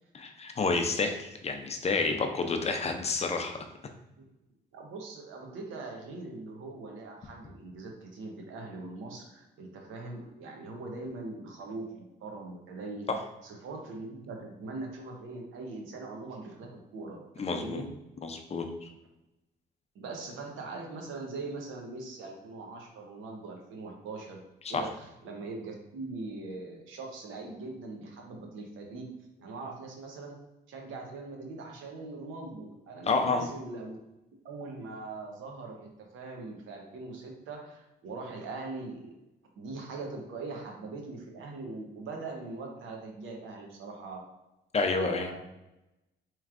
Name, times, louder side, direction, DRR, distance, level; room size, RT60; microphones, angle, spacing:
voice 1, 0.1-3.6 13.1-13.2 17.4-17.8 18.2-18.9 24.7-24.8 33.0-33.5 44.7-45.3, left 4 dB, 30° left, 5 dB, 0.5 m, -29 dB
voice 2, 4.7-13.1 13.4-17.9 19.9-24.4 24.7-29.1 29.4-30.4 30.7-34.0 34.4-39.1 39.6-44.2 44.8-45.5, right 3 dB, 85° right, 1 dB, 0.9 m, -41 dB
4.4 x 3.1 x 2.5 m, 0.95 s
cardioid pair, 90°, 20 cm